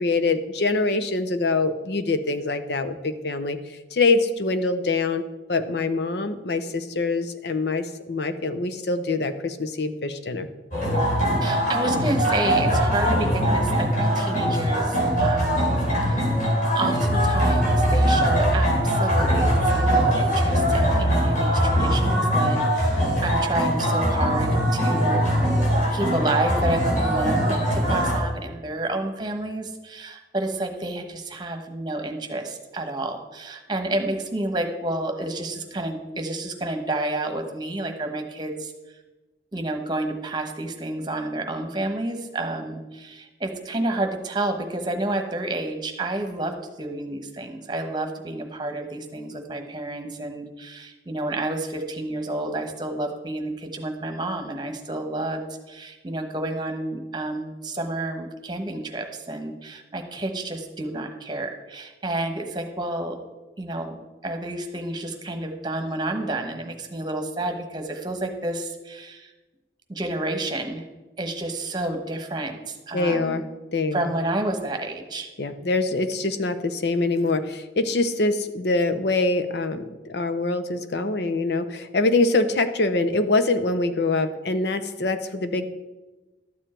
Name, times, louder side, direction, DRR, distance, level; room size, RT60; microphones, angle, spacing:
voice 1, 0.0-3.6 3.9-5.2 5.5-10.5 72.9-73.4 73.7-74.1 75.4-85.6, left 3 dB, 65° left, 10 dB, 0.7 m, -24 dB
sound 1, 10.7-28.2, equal, 45° left, 3.5 m, -21 dB
voice 2, 11.4-15.7 16.0-16.3 16.7-25.2 25.9-38.7 39.5-63.2 63.6-64.0 64.2-69.3 69.9-70.8 71.2-73.5 73.9-75.3, right 2 dB, 25° right, 5 dB, 1.1 m, -30 dB
12.5 x 7.2 x 4.4 m, 1.1 s
head